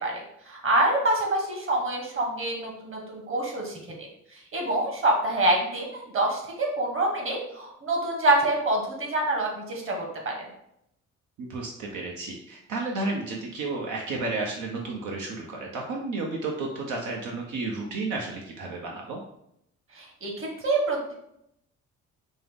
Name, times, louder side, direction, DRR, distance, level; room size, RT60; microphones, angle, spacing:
voice 1, 0.0-3.7 4.5-10.3 20.0-21.1, right 2 dB, 45° right, 0 dB, 1.3 m, -26 dB
voice 2, 11.4-19.2, right 3 dB, 80° right, 0 dB, 0.7 m, -32 dB
5.3 x 2.0 x 3.5 m, 0.76 s
cardioid pair, 90°, 30 cm